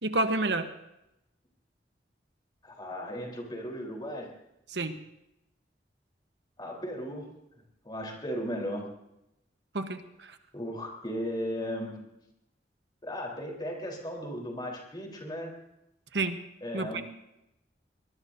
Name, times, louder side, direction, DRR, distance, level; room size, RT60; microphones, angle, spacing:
voice 1, 0.0-0.7 4.7-4.9 9.7-10.4 16.1-16.4 16.7-17.0, right 2 dB, 80° right, 7 dB, 1.2 m, -29 dB
voice 2, 2.6-4.3 6.6-7.3 7.8-8.9 10.5-12.0 13.0-15.5 16.6-17.0, equal, 25° left, 0 dB, 3.8 m, -36 dB
23.0 x 20.5 x 2.7 m, 0.86 s
head